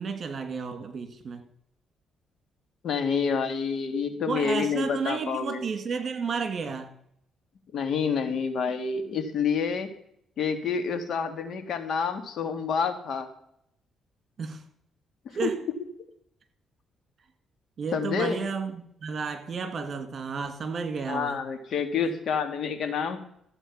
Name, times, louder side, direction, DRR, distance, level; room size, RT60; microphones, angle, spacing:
voice 1, 0.0-1.4 4.3-6.9 14.4-14.6 15.3-15.6 17.8-21.4 22.0-22.1, right 5 dB, 45° right, 7 dB, 2.4 m, -32 dB
voice 2, 2.8-5.6 7.7-9.9 10.4-13.3 15.4-15.5 17.9-18.4 21.1-23.2, left 6 dB, 65° left, 8 dB, 2.0 m, -28 dB
14.5 x 8.1 x 5.9 m, 0.70 s
cardioid pair, 90°, 0 cm